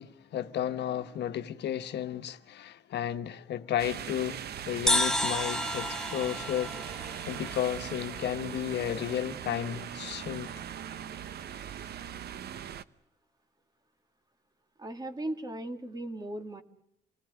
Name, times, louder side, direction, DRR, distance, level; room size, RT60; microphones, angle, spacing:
voice 1, 0.0-4.4 4.7-6.7 7.3-10.5, left 10 dB, 70° left, 1.3 m, -33 dB
sound 1, 3.8-12.8, right 9 dB, 65° right, 1.0 m, -40 dB
sound 2, 4.9-8.4, left 1 dB, 5° left, 1.2 m, -31 dB
voice 2, 14.8-16.6, right 1 dB, 20° right, 2.2 m, -37 dB
28.0 x 19.0 x 9.6 m
cardioid pair, 135°, 18 cm